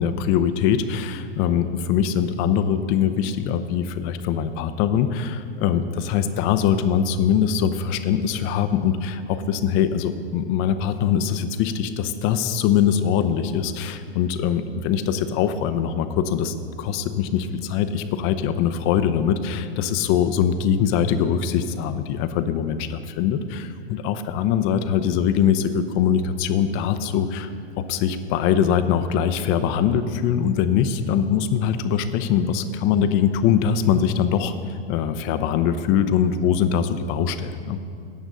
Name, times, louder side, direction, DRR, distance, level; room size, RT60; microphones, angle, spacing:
voice 1, 0.0-37.8, left 8 dB, 40° left, 11 dB, 0.7 m, -22 dB
14.0 x 9.0 x 3.9 m, 2.5 s
hypercardioid pair, 110°, 32 cm